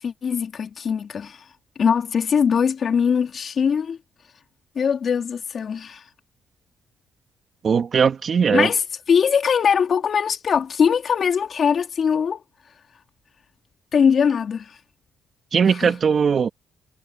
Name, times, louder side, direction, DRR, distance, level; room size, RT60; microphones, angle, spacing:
voice 1, 0.0-1.4 1.8-4.0 4.8-6.0 8.5-8.8 9.1-12.4 13.9-14.8 15.8-15.9, left 7 dB, 50° left, 3.3 m, -21 dB
voice 2, 7.6-8.7 15.5-16.5, right 6 dB, 45° right, 2.3 m, -19 dB
cardioid pair, 90°, 0 cm